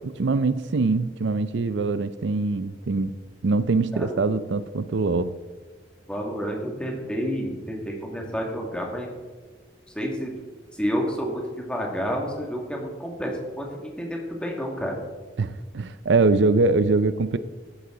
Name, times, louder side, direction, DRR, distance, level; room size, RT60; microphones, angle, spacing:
voice 1, 0.0-3.2 3.4-5.3 15.4-17.4, right 3 dB, 75° right, 0.5 m, -23 dB
voice 2, 6.1-9.1 9.9-10.3 10.7-13.3 13.6-15.0, equal, 5° left, 2.1 m, -29 dB
14.0 x 11.5 x 3.9 m
head